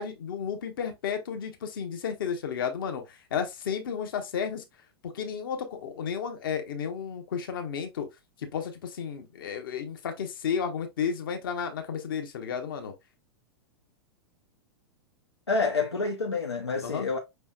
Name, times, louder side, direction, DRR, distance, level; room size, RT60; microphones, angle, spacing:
voice 1, 0.0-4.6 5.0-8.1 8.4-12.9 16.8-17.1, left 7 dB, 55° left, 1.0 m, -32 dB
voice 2, 15.5-17.2, left 4 dB, 80° left, 0.7 m, -28 dB
5.5 x 3.3 x 2.3 m
figure-of-eight pair, 95°, 13 cm